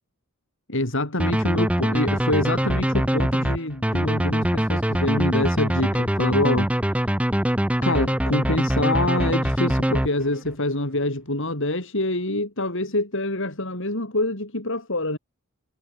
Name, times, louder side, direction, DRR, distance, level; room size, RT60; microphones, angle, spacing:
voice 1, 0.7-6.7 7.8-15.2, left 1 dB, 60° left, 6.3 m, -26 dB
sound 1, 1.2-10.5, equal, 5° right, 1.2 m, -23 dB
head